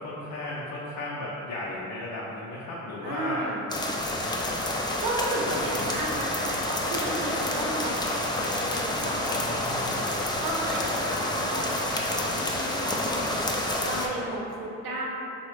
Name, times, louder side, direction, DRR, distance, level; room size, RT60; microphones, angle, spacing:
voice 1, 0.0-3.5 5.5-5.6 9.2-10.3, left 2 dB, 65° left, -5 dB, 0.5 m, -35 dB
voice 2, 3.0-3.6 5.0-10.0 10.4-11.8 12.1-15.0, right 1 dB, 75° right, -4 dB, 0.7 m, -33 dB
sound 1, 3.7-14.1, left 1 dB, 10° left, 0.3 m, -29 dB
3.4 x 2.1 x 3.1 m, 2.9 s
hypercardioid pair, 45°, 37 cm